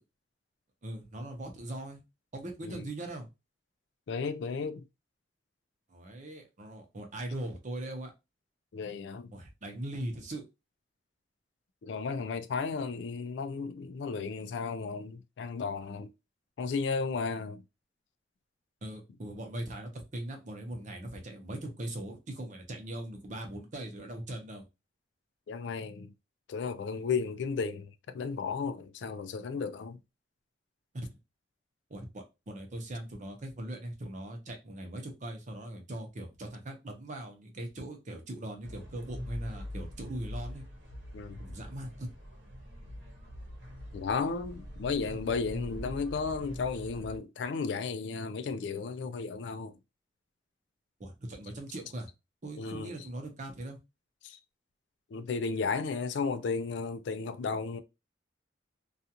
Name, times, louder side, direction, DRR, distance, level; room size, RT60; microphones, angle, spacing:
voice 1, 0.8-2.0 2.3-3.3 5.9-8.1 9.3-10.5 18.8-24.6 30.9-31.1 31.9-40.6 41.4-42.1 45.0-45.2 51.0-52.1 52.4-53.8, right 1 dB, 45° right, 0.7 m, -40 dB
voice 2, 4.1-4.8 8.7-9.4 11.8-16.1 16.6-17.6 25.5-26.1 26.5-30.0 41.1-41.4 43.9-49.8 52.6-53.1 54.2-54.4 55.1-57.8, left 4 dB, 70° left, 0.4 m, -34 dB
sound 1, 38.6-47.2, equal, 85° right, 1.0 m, -43 dB
2.4 x 2.4 x 2.8 m
head